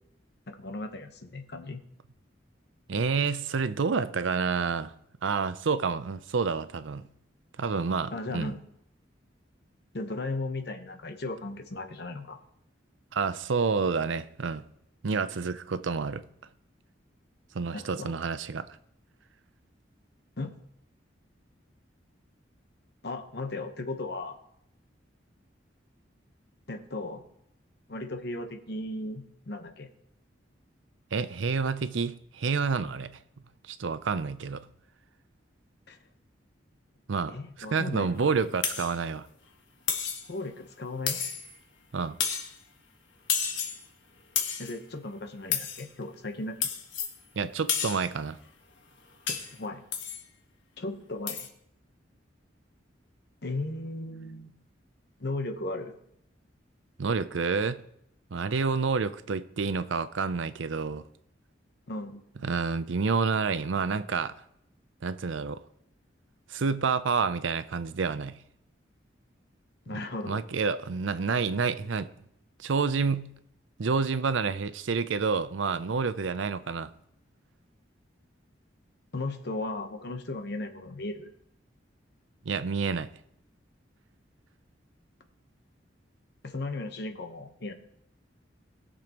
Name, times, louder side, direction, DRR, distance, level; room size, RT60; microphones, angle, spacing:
voice 1, 0.5-1.8 8.1-8.6 9.9-12.4 17.7-18.1 20.4-20.5 23.0-24.4 26.7-27.2 27.9-29.9 35.9-36.0 37.3-38.2 40.3-41.2 44.6-46.7 49.3-49.8 50.8-51.5 53.4-54.5 55.2-55.9 61.9-62.2 69.9-70.4 79.1-81.3 86.4-87.7, left 2 dB, 60° left, 1.0 m, -36 dB
voice 2, 2.9-4.9 5.2-7.1 7.6-8.5 13.1-14.6 15.0-16.2 17.5-18.7 31.1-33.1 33.7-34.6 37.1-37.3 37.7-39.3 41.9-42.2 47.4-48.4 57.0-57.8 58.3-61.0 62.4-64.3 65.0-65.6 66.5-68.4 70.3-72.1 72.6-73.3 73.8-76.9 82.4-83.1, right 5 dB, 85° right, 0.5 m, -28 dB
sound 1, 38.6-39.0 39.9-40.3 41.1-41.6 42.2-42.6 43.3-43.8 44.4-44.8 45.5-45.9 46.6-47.2 47.7-48.1 49.3-49.6 49.9-50.2 51.3-51.5, left 7 dB, 75° left, 1.4 m, -31 dB
20.0 x 6.8 x 3.0 m
head